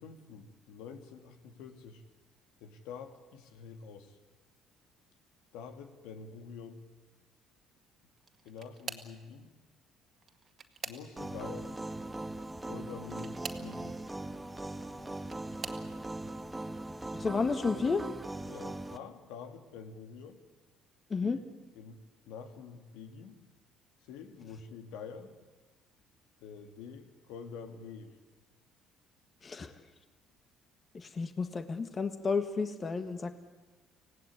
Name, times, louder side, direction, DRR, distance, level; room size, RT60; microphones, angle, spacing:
voice 1, 0.0-2.0 2.6-4.2 5.5-6.8 8.4-9.5 10.8-11.8 12.7-14.0 18.4-20.4 21.2-21.4 21.7-22.0 22.3-23.3 24.0-25.3 26.4-28.2, left 6 dB, 90° left, 7 dB, 2.4 m, -47 dB
sound 1, 8.2-9.2 10.2-11.4 13.0-13.7 14.8-15.9 16.6-17.0 17.4-17.5 18.9-19.0, right 6 dB, 40° right, 2.0 m, -45 dB
sound 2, 11.2-19.0, right 2 dB, 10° right, 1.2 m, -40 dB
voice 2, 17.1-18.0 21.1-21.4 29.4-29.7 30.9-33.3, left 4 dB, 30° left, 9 dB, 1.5 m, -32 dB
24.5 x 17.5 x 9.8 m, 1.3 s
cardioid pair, 100°, 0 cm